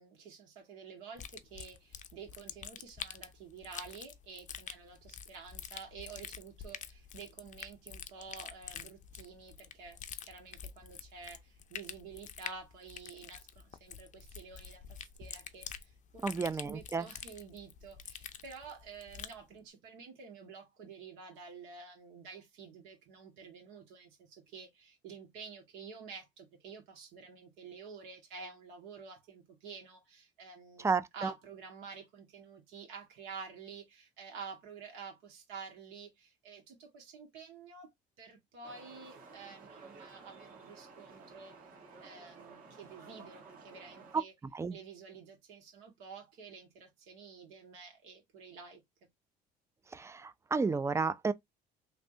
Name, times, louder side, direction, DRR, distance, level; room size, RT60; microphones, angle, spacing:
voice 1, 0.0-37.9 38.2-41.6 42.0-44.3 44.7-48.8, right 5 dB, 85° right, 1.6 m, -50 dB
sound 1, 1.2-19.4, left 8 dB, 40° left, 0.5 m, -47 dB
voice 2, 16.2-17.1 30.8-31.3 44.5-44.8 49.9-51.3, right 4 dB, 15° right, 0.4 m, -32 dB
sound 2, 38.6-44.2, right 4 dB, 50° right, 1.5 m, -54 dB
3.2 x 2.7 x 2.6 m
supercardioid pair, 90°, 19 cm